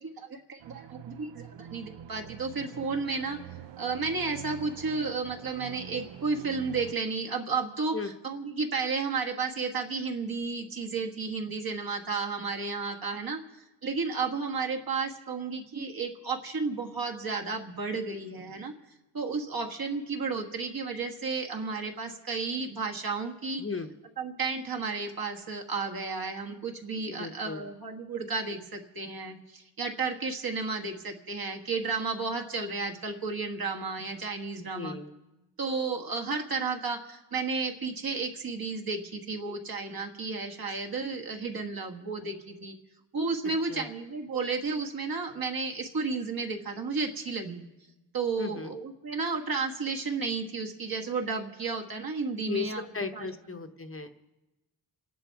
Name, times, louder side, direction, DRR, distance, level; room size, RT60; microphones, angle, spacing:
voice 1, 0.0-3.4 3.8-13.4 13.8-18.7 19.1-23.6 24.2-35.0 35.6-42.7 43.1-47.6 48.1-52.8 53.1-53.6, right 4 dB, 50° right, 3 dB, 1.6 m, -32 dB
sound 1, 0.6-6.9, right 11 dB, 70° right, 0.6 m, -45 dB
voice 2, 23.6-23.9 27.1-27.7 34.6-35.1 43.7-43.9 48.4-48.7 52.5-54.2, left 4 dB, 30° left, 6 dB, 0.9 m, -36 dB
28.5 x 10.0 x 4.7 m, 1.0 s
wide cardioid pair, 130°, 45 cm